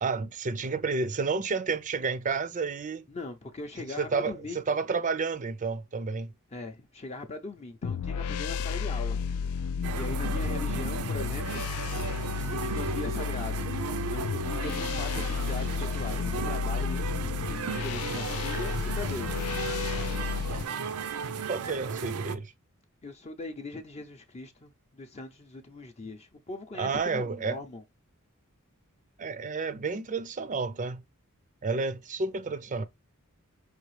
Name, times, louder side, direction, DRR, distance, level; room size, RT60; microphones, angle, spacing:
voice 1, 0.0-3.0 4.0-6.3 20.5-20.9 21.5-22.5 26.7-27.6 29.2-31.0 31.6-32.8, right 4 dB, 35° right, 0.5 m, -31 dB
voice 2, 3.1-4.6 6.5-9.5 9.9-11.6 12.4-19.4 23.0-27.8, left 3 dB, 30° left, 0.6 m, -40 dB
sound 1, 7.8-20.6, left 6 dB, 75° left, 0.4 m, -32 dB
sound 2, 9.8-22.3, right 5 dB, 90° right, 0.6 m, -35 dB
4.8 x 3.5 x 3.2 m
head